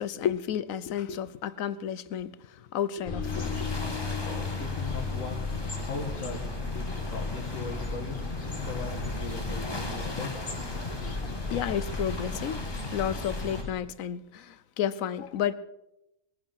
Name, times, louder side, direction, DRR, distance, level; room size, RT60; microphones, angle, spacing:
voice 1, 0.0-3.7 11.2-12.6 12.9-15.5, left 9 dB, 90° left, 1.2 m, -32 dB
sound 1, 3.0-13.7, left 3 dB, 40° left, 2.1 m, -34 dB
sound 2, 3.3-13.6, left 2 dB, 20° left, 1.4 m, -41 dB
voice 2, 4.2-5.4 5.8-10.3, left 4 dB, 75° left, 1.9 m, -39 dB
21.0 x 10.5 x 5.8 m
omnidirectional pair, 1.4 m